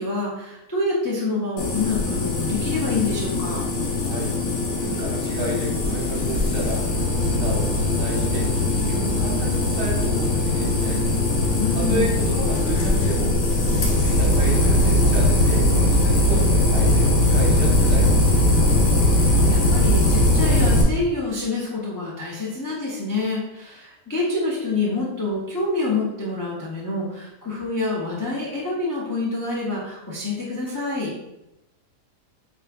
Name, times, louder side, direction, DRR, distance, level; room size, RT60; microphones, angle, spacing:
voice 1, 0.0-3.6 11.6-12.2 19.2-31.1, left 3 dB, 25° left, -5 dB, 0.4 m, -27 dB
sound 1, 1.6-20.8, left 1 dB, 65° left, 1.3 m, -20 dB
voice 2, 4.0-4.4 4.8-11.0 11.7-13.4 13.7-18.3, right 2 dB, 85° right, -2 dB, 1.8 m, -31 dB
7.3 x 2.6 x 2.3 m, 0.90 s
omnidirectional pair, 1.8 m